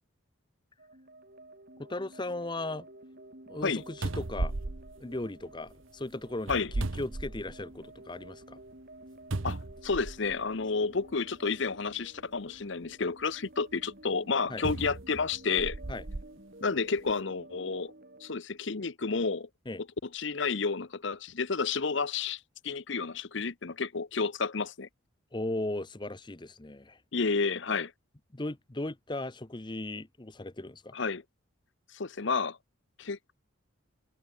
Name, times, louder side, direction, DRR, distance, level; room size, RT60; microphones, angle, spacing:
sound 1, 0.8-18.4, right 1 dB, 45° right, 4.2 m, -52 dB
voice 1, 1.8-2.9 3.5-4.5 5.0-8.6 14.5-14.6 15.9-16.0 19.7-19.8 25.3-27.0 28.3-30.9, left 2 dB, 20° left, 0.8 m, -37 dB
sound 2, 3.6-3.7 4.0-5.7 6.4-7.8 8.3-8.4 9.3-10.4 11.4-11.5 14.6-16.3 17.0-17.1, right 2 dB, 65° right, 1.1 m, -35 dB
voice 2, 9.4-15.8 16.6-17.9 18.2-19.5 20.1-24.9 27.1-27.9 30.9-31.2 31.9-32.6 33.0-33.4, left 4 dB, 60° left, 0.9 m, -31 dB
head